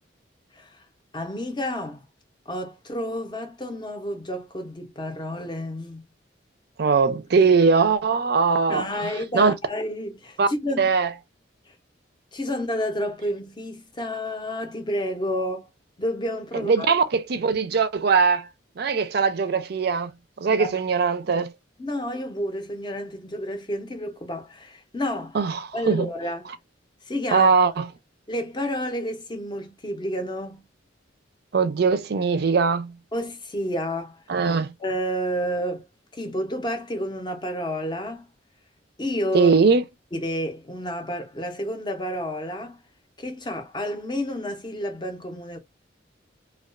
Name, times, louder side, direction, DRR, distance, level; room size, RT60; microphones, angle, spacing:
voice 1, 1.1-2.0 2.5-6.0 8.7-10.9 11.7-11.8 12.3-15.7 16.0-16.9 20.5-20.8 21.8-25.4 25.7-26.5 27.1-27.5 28.3-30.7 33.1-34.2 34.8-35.9 36.1-38.3 39.0-39.5 40.1-42.8 43.2-45.6, equal, 25° left, 0.6 m, -30 dB
voice 2, 6.8-9.5 10.4-10.5 10.8-11.1 16.5-18.5 18.8-20.1 20.4-21.5 25.3-26.1 27.3-27.9 31.5-32.9 34.3-34.7 39.3-39.8, right 5 dB, 55° right, 0.4 m, -21 dB
2.2 x 2.2 x 2.4 m
head